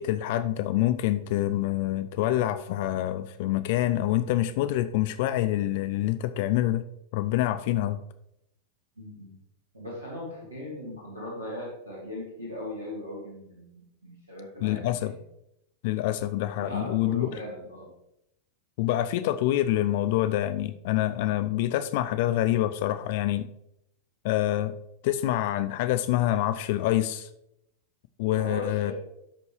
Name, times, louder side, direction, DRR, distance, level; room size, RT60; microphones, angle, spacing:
voice 1, 0.0-6.8 7.1-8.0 14.6-15.1 15.8-17.3 18.8-23.5 24.2-24.7 25.0-27.3 28.2-28.9, left 14 dB, 50° left, 11 dB, 0.4 m, -26 dB
voice 2, 9.0-9.3 9.7-15.1 16.6-17.9 28.3-28.9, left 1 dB, 80° right, -5 dB, 2.1 m, -38 dB
12.5 x 5.2 x 3.1 m, 0.81 s
figure-of-eight pair, 90°, 0 cm